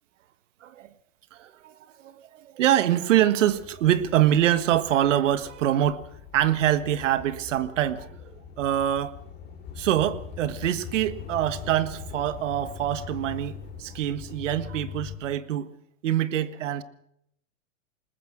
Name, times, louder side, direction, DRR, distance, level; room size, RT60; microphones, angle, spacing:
voice 1, 1.3-6.0 6.3-8.2 8.6-9.1 9.8-15.7 16.0-16.8, right 11 dB, 70° right, 1.5 m, -25 dB
sound 1, 3.5-15.2, left 6 dB, 25° left, 6.1 m, -44 dB
sound 2, 9.9-15.2, left 7 dB, 10° right, 3.9 m, -43 dB
21.0 x 19.5 x 6.3 m
hypercardioid pair, 135°, 39 cm